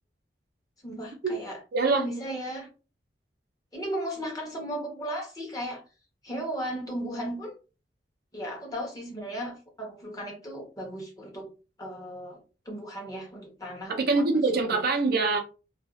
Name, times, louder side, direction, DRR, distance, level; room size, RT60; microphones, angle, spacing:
voice 1, 0.8-1.6 1.9-2.7 3.7-5.8 6.2-7.5 8.3-11.5 11.8-12.4 12.7-14.3 14.7-14.8, right 1 dB, 20° left, -1 dB, 0.9 m, -35 dB
voice 2, 1.7-2.0 14.0-15.4, right 3 dB, 60° right, 4 dB, 0.5 m, -24 dB
2.5 x 2.3 x 2.3 m, 0.32 s
head